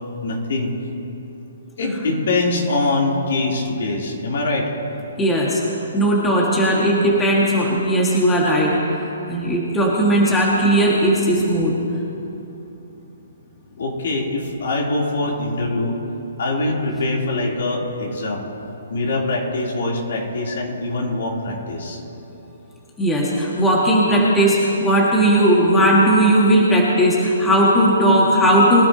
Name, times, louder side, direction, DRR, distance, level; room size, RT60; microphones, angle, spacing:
voice 1, 0.2-0.7 1.8-4.7 13.8-16.0 16.4-18.5 18.9-22.0, left 2 dB, 65° left, -2 dB, 3.5 m, -23 dB
voice 2, 5.2-5.6 5.9-8.8 9.3-11.8 23.0-28.9, right 1 dB, 10° left, -4 dB, 2.0 m, -17 dB
23.0 x 12.0 x 3.0 m, 2.9 s
hypercardioid pair, 150°, 0 cm